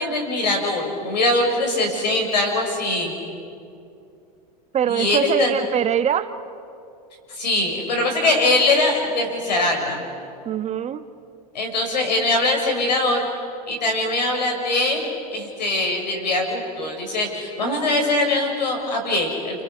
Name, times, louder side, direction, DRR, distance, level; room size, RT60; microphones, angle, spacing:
voice 1, 0.0-3.1 4.9-5.5 7.3-10.0 11.5-13.2 13.7-19.6, left 2 dB, 90° left, 3 dB, 6.6 m, -22 dB
voice 2, 4.7-6.3 10.4-11.0, right 9 dB, 30° right, 11 dB, 1.2 m, -23 dB
30.0 x 27.5 x 6.4 m, 2.5 s
hypercardioid pair, 100°, 21 cm